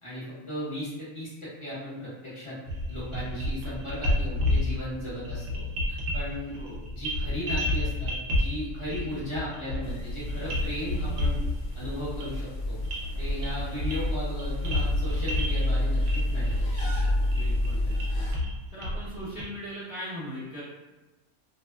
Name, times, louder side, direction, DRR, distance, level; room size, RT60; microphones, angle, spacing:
voice 1, 0.0-2.6 2.9-6.6 6.9-11.4 11.7-12.8 13.2-16.8, equal, 25° left, -10 dB, 0.7 m, -36 dB
sound 1, 2.7-19.4, left 1 dB, 70° right, 0.9 m, -31 dB
sound 2, 9.8-18.3, left 1 dB, 60° left, 0.7 m, -29 dB
voice 2, 13.6-13.9 17.2-18.3 18.7-20.6, equal, 15° right, -15 dB, 0.6 m, -40 dB
2.6 x 2.1 x 2.2 m, 1.1 s
omnidirectional pair, 1.5 m